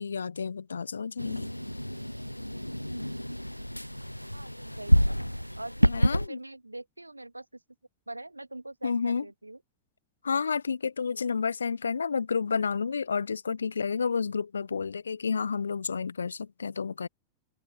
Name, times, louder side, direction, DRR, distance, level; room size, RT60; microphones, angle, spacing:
voice 1, 0.0-1.5 5.9-6.4 8.8-9.3 10.2-17.1, left 5 dB, 75° left, 0.8 m, -30 dB
sound 1, 1.2-6.3, equal, 90° left, 0.3 m, -28 dB
voice 2, 4.3-7.6 8.1-9.6, right 2 dB, 85° right, 1.9 m, -43 dB
open air
figure-of-eight pair, 90°, 0 cm